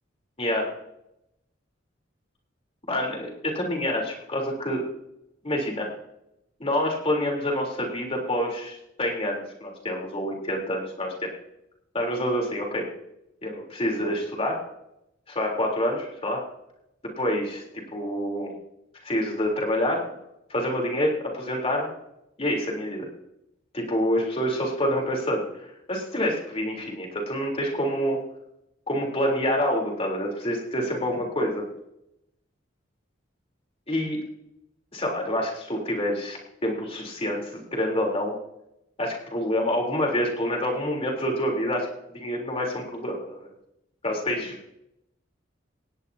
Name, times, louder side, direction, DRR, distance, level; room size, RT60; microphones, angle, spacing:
voice 1, 0.4-0.7 2.9-4.8 5.4-5.9 6.6-11.3 11.9-12.8 13.4-14.6 15.3-16.4 17.2-17.6 17.9-18.5 19.0-20.0 20.5-21.9 22.4-23.1 23.7-28.2 28.9-31.7 33.9-34.2 34.9-38.3 39.0-43.5 44.0-44.6, equal, 30° left, -1 dB, 3.7 m, -27 dB
18.5 x 17.0 x 2.8 m, 0.84 s
head